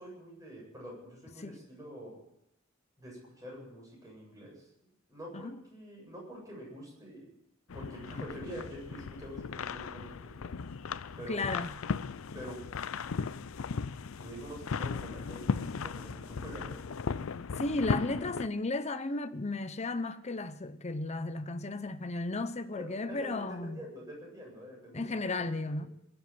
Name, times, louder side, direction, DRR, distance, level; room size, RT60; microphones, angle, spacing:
voice 1, 0.0-2.2 3.0-4.6 5.1-7.3 7.7-10.5 11.2-11.4 12.3-12.6 14.2-16.8 17.7-18.2 22.7-25.9, equal, 15° right, 7.6 m, -46 dB
sound 1, 7.7-18.5, left 5 dB, 80° left, 0.5 m, -37 dB
voice 2, 11.3-11.7 17.6-23.8 24.9-25.9, left 2 dB, 35° left, 0.8 m, -34 dB
22.0 x 8.0 x 7.6 m
head